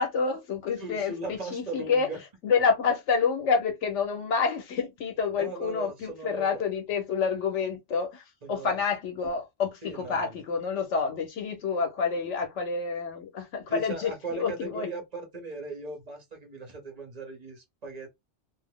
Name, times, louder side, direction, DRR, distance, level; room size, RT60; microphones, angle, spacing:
voice 1, 0.0-2.1 2.4-14.9, left 5 dB, 90° left, 1.2 m, -28 dB
voice 2, 0.8-2.2 5.3-6.7 8.4-8.8 9.8-10.4 13.7-18.1, right 2 dB, 40° right, 0.9 m, -38 dB
2.7 x 2.0 x 3.5 m
omnidirectional pair, 1.2 m